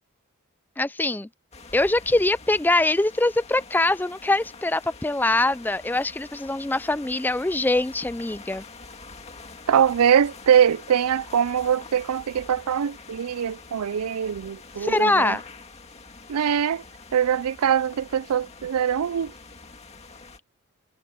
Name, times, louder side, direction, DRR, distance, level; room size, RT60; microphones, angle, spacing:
voice 1, 0.8-1.3 1.7-8.7 14.8-15.4, left 2 dB, 10° left, 0.3 m, -23 dB
sound 1, 1.5-20.4, left 3 dB, 30° left, 2.2 m, -45 dB
voice 2, 9.7-15.4 16.3-16.8 17.1-19.3, right 8 dB, 90° right, 0.4 m, -22 dB
head